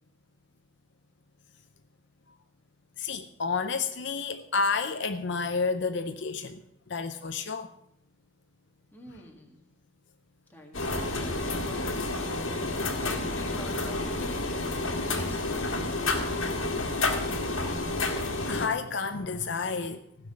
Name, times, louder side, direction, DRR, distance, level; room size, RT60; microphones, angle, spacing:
voice 1, 3.0-6.6 6.9-7.7 18.3-20.0, left 4 dB, 60° left, 0.6 m, -30 dB
voice 2, 8.9-9.6 10.5-12.2 12.7-16.0, left 1 dB, 10° left, 1.8 m, -46 dB
sound 1, 10.7-18.7, left 2 dB, 75° left, 1.7 m, -30 dB
15.5 x 5.9 x 7.7 m
head